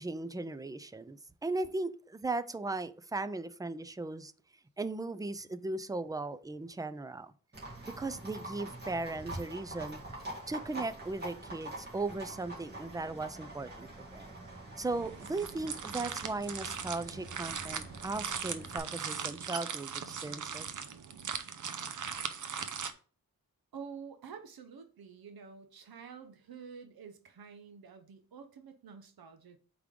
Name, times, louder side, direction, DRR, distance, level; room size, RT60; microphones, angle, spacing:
voice 1, 0.0-4.3 4.8-7.3 7.8-10.0 10.5-14.3 14.8-20.8, right 2 dB, 10° right, 13 dB, 0.3 m, -37 dB
Livestock farm animals working animals, 7.5-18.8, right 1 dB, 30° right, 2.1 m, -45 dB
sound 1, 14.9-22.9, right 6 dB, 55° right, 0.7 m, -39 dB
voice 2, 23.7-29.6, right 6 dB, 85° right, 7 dB, 0.8 m, -49 dB
8.3 x 3.6 x 3.7 m, 0.39 s
wide cardioid pair, 175°, 36 cm